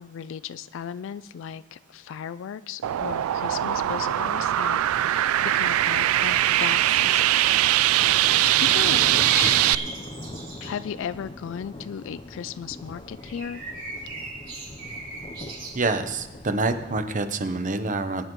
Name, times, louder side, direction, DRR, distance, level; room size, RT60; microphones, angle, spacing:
voice 1, 0.0-7.3 8.3-9.5 10.6-13.6, left 8 dB, 65° left, 14 dB, 0.3 m, -36 dB
sound 1, 2.8-9.8, right 13 dB, 85° right, 0.3 m, -21 dB
sound 2, 7.1-17.1, left 1 dB, 25° left, 0.7 m, -40 dB
sound 3, 9.2-10.8 13.2-15.7, right 3 dB, 55° right, 4.2 m, -37 dB
voice 2, 15.7-18.2, right 3 dB, 40° right, 9 dB, 0.8 m, -26 dB
21.5 x 9.8 x 3.1 m, 1.1 s
head